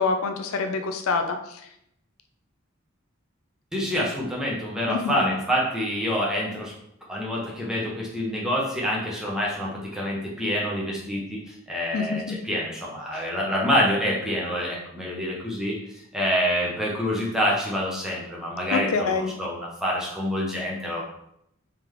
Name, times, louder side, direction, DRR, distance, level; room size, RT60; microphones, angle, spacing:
voice 1, 0.0-1.6 4.9-5.3 11.9-12.4 13.1-13.3 18.7-19.3, left 4 dB, 80° left, 6 dB, 0.4 m, -26 dB
voice 2, 3.7-6.7 7.1-15.8 16.1-21.0, equal, 5° right, -4 dB, 0.8 m, -27 dB
3.7 x 3.3 x 3.1 m, 0.76 s
head